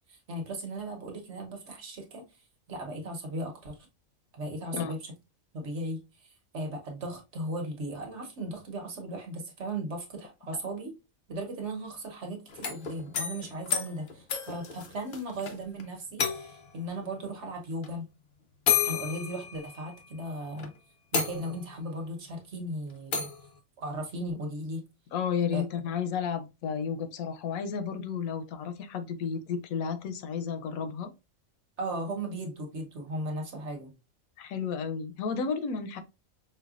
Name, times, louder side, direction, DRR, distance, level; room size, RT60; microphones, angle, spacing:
voice 1, 0.1-2.2 2.7-3.9 4.3-5.0 5.5-6.0 6.5-10.9 11.3-18.1 18.8-20.7 21.1-23.3 23.8-24.8 25.5-25.6 31.8-33.9, right 1 dB, 60° right, 1.2 m, -36 dB
sound 1, 12.5-15.5 15.8-15.9 16.2-16.8 17.8-17.9 18.7-20.1 20.6-20.7 21.1-21.8 23.1-23.4, left 7 dB, 55° left, 0.6 m, -31 dB
voice 2, 25.1-31.1 34.4-36.0, left 6 dB, 90° left, 1.1 m, -32 dB
5.5 x 2.2 x 2.3 m
omnidirectional pair, 1.4 m